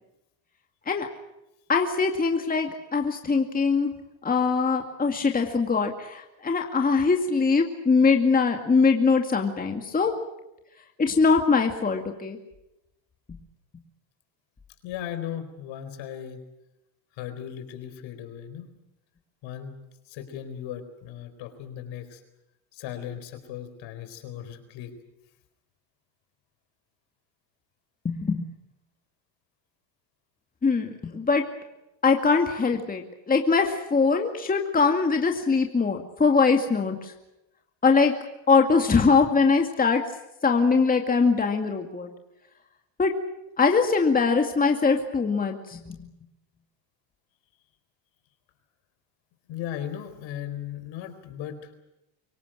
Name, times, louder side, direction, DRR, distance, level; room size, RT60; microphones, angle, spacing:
voice 1, 1.7-3.9 4.2-10.1 11.0-12.4 28.0-28.4 30.6-31.4 32.0-37.1 37.8-38.2 38.5-40.0 40.4-42.1 43.0-43.1 43.6-46.1, left 4 dB, 15° left, 3 dB, 2.2 m, -22 dB
voice 2, 14.8-16.4 17.1-18.7 19.4-22.2 22.7-24.9 49.5-51.7, left 10 dB, 60° left, 9 dB, 4.4 m, -37 dB
25.0 x 17.5 x 9.1 m, 0.90 s
supercardioid pair, 115°, 50 cm